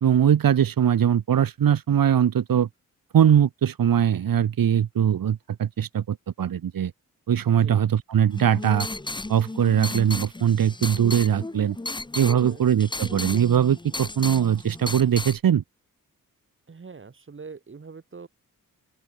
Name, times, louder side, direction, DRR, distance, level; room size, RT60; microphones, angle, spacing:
voice 1, 0.0-2.7 3.1-6.9 7.3-8.9 9.3-11.8 12.1-15.6, right 9 dB, 85° right, 2.1 m, -21 dB
voice 2, 7.5-7.9 12.3-12.7 16.7-18.3, right 5 dB, 35° right, 5.1 m, -43 dB
sound 1, 8.3-15.4, left 2 dB, 15° left, 1.8 m, -34 dB
open air
wide cardioid pair, 170°, 33 cm